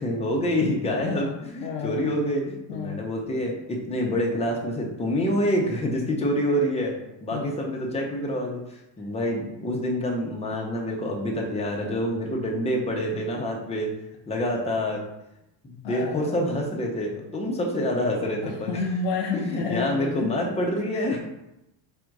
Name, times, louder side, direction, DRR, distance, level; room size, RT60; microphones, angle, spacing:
voice 1, 0.0-6.9 7.2-13.9 14.3-15.0 15.6-18.9 19.3-21.2, equal, 15° left, -1 dB, 0.7 m, -27 dB
voice 2, 1.0-2.0 2.7-3.0 7.3-7.4 15.8-16.3 18.4-20.3 20.9-21.0, left 5 dB, 60° left, 0 dB, 0.6 m, -30 dB
4.3 x 2.5 x 4.6 m, 0.88 s
cardioid pair, 135°, 47 cm